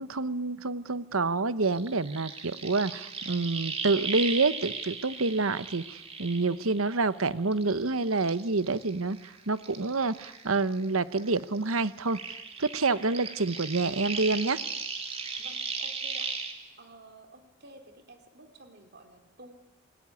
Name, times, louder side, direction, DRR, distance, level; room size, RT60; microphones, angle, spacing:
voice 1, 0.0-9.2 9.5-12.2 12.6-14.6, right 3 dB, 85° right, 14 dB, 1.1 m, -28 dB
sound 1, 1.6-7.2 7.5-10.9 11.1-16.5, right 5 dB, 30° right, 2.8 m, -37 dB
voice 2, 15.4-16.3 16.8-19.5, right 2 dB, 50° right, 5 dB, 3.5 m, -52 dB
27.5 x 21.0 x 9.8 m, 1.0 s
head